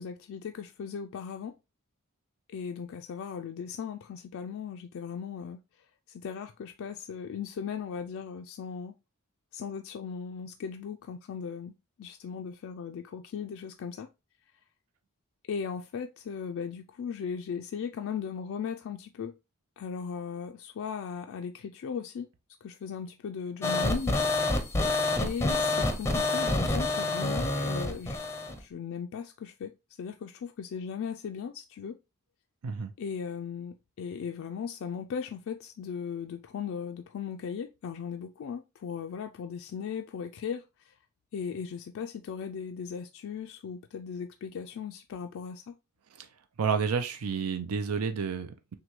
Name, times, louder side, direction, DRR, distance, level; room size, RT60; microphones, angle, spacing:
voice 1, 0.0-1.5 2.5-5.6 6.1-9.0 9.5-11.7 12.0-14.1 15.5-19.3 19.8-22.3 22.6-24.5 25.2-28.3 28.6-29.7 30.0-32.0 33.0-40.9 41.3-45.7, left 6 dB, 60° left, 0.3 m, -37 dB
sound 1, 23.6-28.6, left 2 dB, 10° left, 0.5 m, -28 dB
voice 2, 46.6-48.8, right 6 dB, 80° right, 0.5 m, -30 dB
6.0 x 2.2 x 3.0 m
head